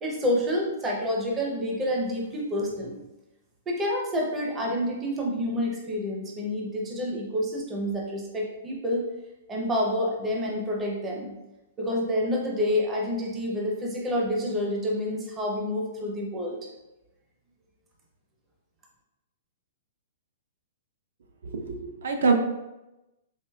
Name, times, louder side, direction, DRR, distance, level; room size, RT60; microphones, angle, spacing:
voice 1, 0.0-3.0 3.7-9.1 9.5-11.4 11.8-16.6, left 1 dB, 10° right, -2 dB, 0.5 m, -28 dB
voice 2, 21.5-22.3, right 4 dB, 75° right, 4 dB, 0.5 m, -24 dB
4.7 x 2.9 x 2.2 m, 0.99 s
hypercardioid pair, 175°, 0 cm